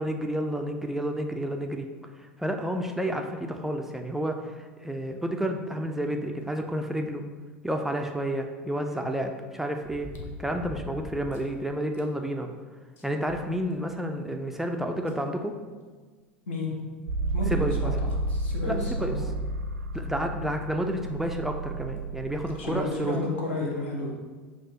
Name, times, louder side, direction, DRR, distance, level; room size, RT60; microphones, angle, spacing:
voice 1, 0.0-1.9 2.2-7.2 7.6-10.1 10.4-12.5 13.0-15.5 17.5-17.9 18.7-18.8 19.0-19.2 19.9-23.2, equal, 5° right, 3 dB, 0.3 m, -30 dB
sound 1, 7.9-8.0 9.8-11.5 11.9-12.0 12.5-12.6 13.0-14.1 15.1-15.2 16.6-16.7 17.3-17.4 18.1-18.3 19.6-19.7 19.9-20.0 21.7-22.1 22.8-22.9, left 1 dB, 35° left, 0.7 m, -43 dB
voice 2, 16.5-16.8 17.3-17.9 18.3-19.3 22.5-24.1, left 2 dB, 70° left, -2 dB, 0.9 m, -31 dB
sound 2, 17.1-22.6, right 2 dB, 80° right, 0.4 m, -31 dB
5.9 x 2.4 x 2.8 m, 1.4 s
figure-of-eight pair, 75°, 6 cm